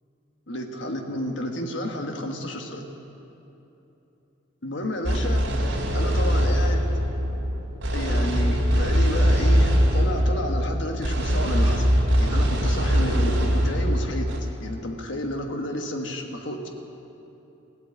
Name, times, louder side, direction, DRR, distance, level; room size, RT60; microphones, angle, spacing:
voice 1, 0.5-2.8 4.6-5.4 5.9-6.9 7.9-11.9 12.2-14.3 14.6-16.7, equal, 70° left, 3 dB, 1.4 m, -31 dB
sound 1, 5.0-14.4, equal, 75° right, 2.7 m, -22 dB
16.0 x 8.6 x 8.5 m, 3.0 s
head